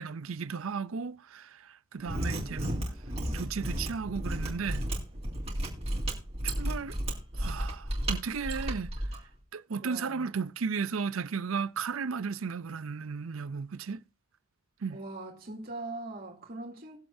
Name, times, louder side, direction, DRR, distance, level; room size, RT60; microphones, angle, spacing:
voice 1, 0.0-2.8 3.3-4.8 6.4-7.0 7.4-8.9 9.5-14.0 14.8-15.0, right 5 dB, 80° right, 0.6 m, -34 dB
Mechanisms, 2.0-9.2, right 1 dB, 30° right, 3.3 m, -33 dB
voice 2, 9.8-10.3 14.9-17.0, right 2 dB, 45° right, 3.1 m, -41 dB
20.0 x 7.9 x 2.7 m
head